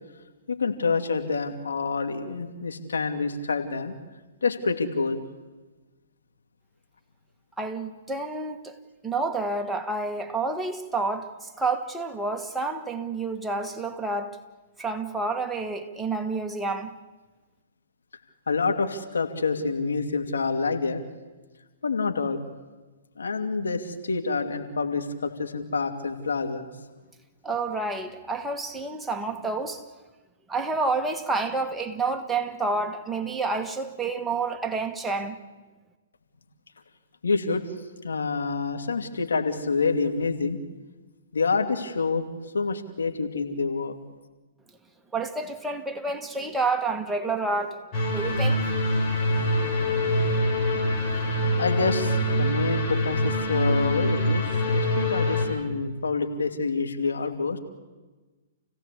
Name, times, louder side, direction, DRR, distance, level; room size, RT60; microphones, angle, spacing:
voice 1, 0.5-3.9 4.4-5.2 18.5-21.0 21.8-22.4 23.2-26.7 37.2-37.6 38.0-40.6 41.3-42.2 42.5-43.9 51.6-57.6, left 4 dB, 80° left, 2.7 m, -27 dB
voice 2, 7.6-8.8 9.0-14.4 14.8-17.0 27.4-29.8 30.5-35.4 45.1-47.8 48.1-48.7, right 3 dB, 5° right, 1.7 m, -29 dB
sound 1, 47.9-55.5, left 1 dB, 35° left, 7.0 m, -24 dB
29.5 x 16.5 x 8.5 m
hypercardioid pair, 125°, 0 cm